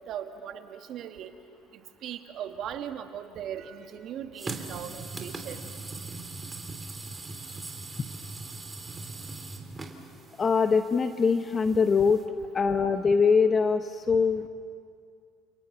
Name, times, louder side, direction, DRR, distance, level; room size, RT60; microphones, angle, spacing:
voice 1, 0.1-1.3 2.0-5.6, right 9 dB, 55° right, 7 dB, 1.9 m, -38 dB
sound 1, 4.4-12.2, right 3 dB, 20° right, 3.1 m, -40 dB
voice 2, 10.4-12.2 12.5-14.5, left 5 dB, 30° left, 9 dB, 1.0 m, -23 dB
29.5 x 29.0 x 6.1 m, 2.3 s
hypercardioid pair, 70°, 0 cm